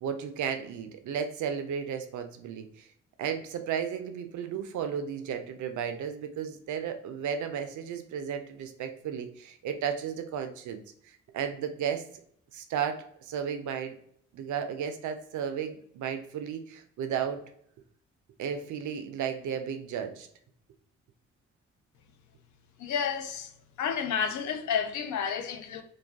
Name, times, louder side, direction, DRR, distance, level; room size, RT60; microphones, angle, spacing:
voice 1, 0.0-2.9 3.2-10.8 11.3-12.0 12.5-14.0 14.3-17.4 18.4-20.3, right 8 dB, 60° right, 0.5 m, -34 dB
voice 2, 22.8-23.5 23.8-25.8, left 7 dB, 60° left, 0.5 m, -30 dB
2.4 x 2.3 x 2.2 m
hypercardioid pair, 40°, 34 cm